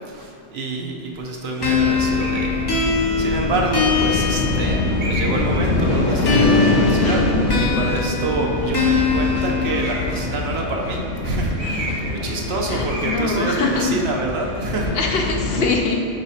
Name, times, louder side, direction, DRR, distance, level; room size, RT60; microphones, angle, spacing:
voice 1, 0.1-2.6 3.2-7.2 7.6-15.0, right 2 dB, 60° right, 1 dB, 0.9 m, -27 dB
sound 1, 1.6-15.7, left 2 dB, 85° left, 1.0 m, -24 dB
sound 2, 1.6-5.2 6.3-10.3, left 5 dB, 30° left, 0.5 m, -23 dB
sound 3, 2.2-2.6 3.4-3.5 5.0-5.5 9.7-10.2 11.6-12.2 12.4-12.6 12.9-13.3, right 1 dB, 85° right, 1.7 m, -31 dB
voice 2, 6.9-7.6 8.0-8.1 9.4-9.5 9.8-9.9 12.6-14.0 14.5-14.6 14.9-16.1, left 4 dB, 65° left, 1 dB, 0.7 m, -24 dB
4.9 x 4.9 x 4.1 m, 2.3 s
omnidirectional pair, 1.2 m